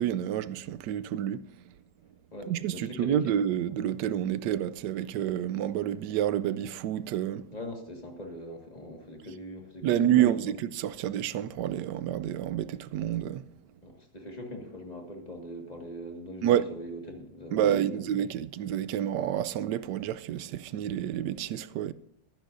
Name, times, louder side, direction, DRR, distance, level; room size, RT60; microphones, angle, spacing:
voice 1, 0.0-1.7 2.5-7.4 9.8-13.4 16.4-16.7 17.5-21.9, right 11 dB, 75° right, 1.2 m, -29 dB
voice 2, 2.3-3.3 7.5-10.6 13.8-18.0, equal, 20° left, 1.8 m, -42 dB
21.5 x 10.5 x 2.6 m
omnidirectional pair, 1.9 m